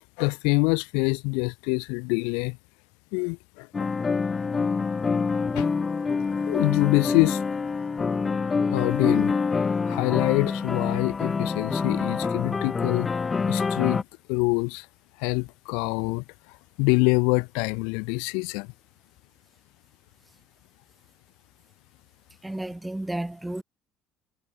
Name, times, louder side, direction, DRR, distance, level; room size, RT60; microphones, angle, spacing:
voice 1, 0.2-2.6 3.1-3.7 5.5-5.7 6.5-7.4 8.7-9.3 9.9-13.1 13.5-14.0 14.3-14.8 15.2-16.2 16.8-18.7, left 35 dB, 85° left, 1.4 m, -25 dB
sound 1, 3.7-14.0, left 4 dB, 25° left, 2.5 m, -26 dB
voice 2, 22.4-23.6, right 1 dB, 10° right, 1.7 m, -32 dB
supercardioid pair, 95°, 0 cm